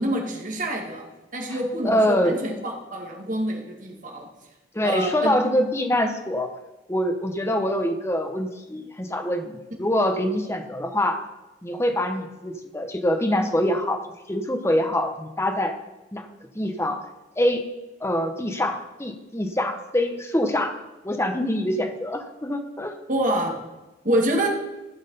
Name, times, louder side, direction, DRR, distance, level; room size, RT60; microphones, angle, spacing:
voice 1, 0.0-4.3 4.8-5.4 23.1-23.6 24.0-24.6, right 1 dB, 45° right, 1 dB, 2.1 m, -26 dB
voice 2, 1.8-2.4 4.7-6.5 6.9-11.2 11.6-14.0 14.3-15.7 16.1-16.3 16.5-17.0 17.4-17.6 18.0-20.7 21.0-22.9, left 1 dB, 15° left, 6 dB, 1.0 m, -24 dB
14.5 x 6.3 x 5.5 m, 1.0 s
head